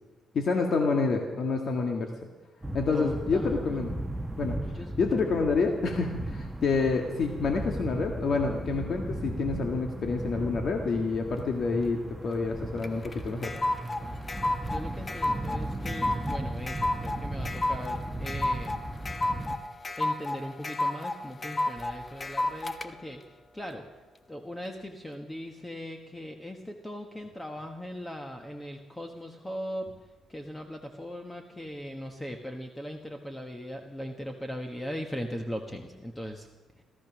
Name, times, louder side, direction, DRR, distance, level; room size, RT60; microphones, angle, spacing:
voice 1, 0.3-2.1 2.7-3.9 4.4-13.5, left 4 dB, 55° left, 3 dB, 1.7 m, -28 dB
sound 1, 2.6-19.6, right 1 dB, 10° right, 1.1 m, -36 dB
voice 2, 2.9-3.8 4.5-4.9 13.8-14.2 14.7-18.8 20.0-23.2 23.5-23.8 24.3-29.9 30.3-36.5, equal, 10° left, 4 dB, 1.3 m, -39 dB
sound 2, 12.8-22.9, left 2 dB, 30° left, 1.0 m, -31 dB
17.0 x 14.0 x 6.2 m, 1.2 s
cardioid pair, 90°, 0 cm